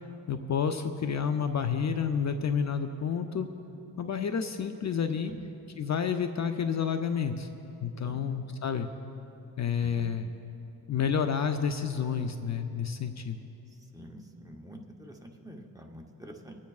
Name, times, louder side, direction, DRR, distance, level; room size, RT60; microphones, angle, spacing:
voice 1, 0.3-3.5 4.0-5.3 5.8-7.5 7.8-8.9 9.6-10.3 10.9-13.4, left 7 dB, 50° left, 7 dB, 0.5 m, -30 dB
voice 2, 9.8-10.1 13.9-16.6, equal, 10° right, 1 dB, 0.8 m, -47 dB
25.0 x 9.4 x 2.4 m, 2.9 s
wide cardioid pair, 120°, 37 cm